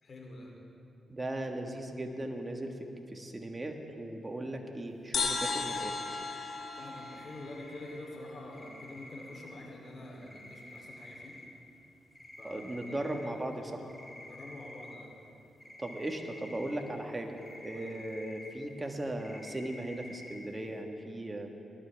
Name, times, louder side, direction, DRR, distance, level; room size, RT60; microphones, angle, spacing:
voice 1, 0.0-0.5 6.8-11.4 12.4-12.9 13.7-13.9 14.2-15.1 17.7-18.0, left 1 dB, 50° left, -1 dB, 3.4 m, -47 dB
voice 2, 1.1-6.0 12.4-13.8 15.8-21.5, right 1 dB, 25° right, 3 dB, 1.6 m, -38 dB
sound 1, 5.1-8.6, left 4 dB, 65° left, 1.4 m, -36 dB
sound 2, 5.3-6.3 6.9-8.0 8.5-9.5 10.2-11.5 12.1-13.3 13.9-15.0 15.6-16.8 17.4-18.5 18.8-18.9 19.2-20.4, left 1 dB, 15° left, 2.1 m, -50 dB
19.5 x 12.0 x 3.5 m, 2.8 s
supercardioid pair, 55°, 0 cm